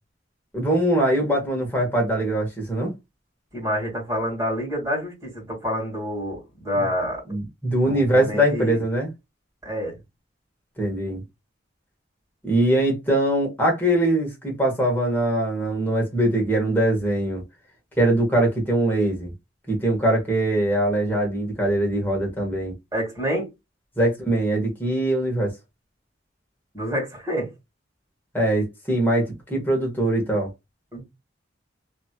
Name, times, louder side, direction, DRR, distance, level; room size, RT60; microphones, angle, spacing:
voice 1, 0.5-2.9 6.7-6.9 7.3-9.1 10.8-11.2 12.4-17.4 18.0-19.3 19.7-22.7 24.0-25.5 28.3-30.5, right 1 dB, 10° left, 1.3 m, -22 dB
voice 2, 3.5-7.2 7.8-8.8 9.6-10.0 22.9-23.5 26.7-27.5 30.9-31.0, equal, 20° right, 2.0 m, -27 dB
3.0 x 2.8 x 2.3 m
head